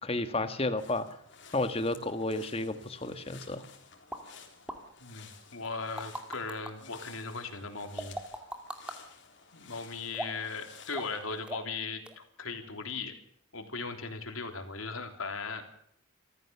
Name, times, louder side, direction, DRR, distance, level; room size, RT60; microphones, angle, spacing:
voice 1, 0.0-1.1 1.5-3.6, left 2 dB, 30° left, 10 dB, 1.6 m, -32 dB
sound 1, 0.8-11.4, left 6 dB, 55° left, 3.8 m, -54 dB
sound 2, 4.1-4.2 4.7-4.8 5.6-6.7 8.0-9.0 10.1-10.5 10.9-11.2 11.5-11.8 12.1-12.2, right 1 dB, 5° right, 2.2 m, -38 dB
voice 2, 5.0-8.1 9.5-13.1 13.5-15.6, left 4 dB, 80° left, 5 dB, 3.5 m, -38 dB
27.0 x 14.5 x 7.0 m, 0.68 s
head